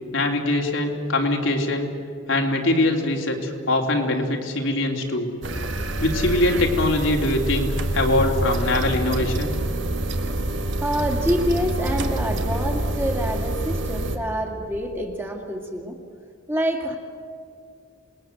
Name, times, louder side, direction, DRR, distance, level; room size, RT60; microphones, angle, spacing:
voice 1, 0.1-1.9 2.3-5.3 6.0-7.7 7.9-9.6, left 2 dB, 75° left, 1 dB, 3.1 m, -22 dB
sound 1, 5.4-14.2, right 1 dB, 65° right, 1.9 m, -26 dB
voice 2, 10.8-16.0 16.5-17.0, equal, 10° right, 1 dB, 2.3 m, -26 dB
28.0 x 20.5 x 7.9 m, 2.4 s
head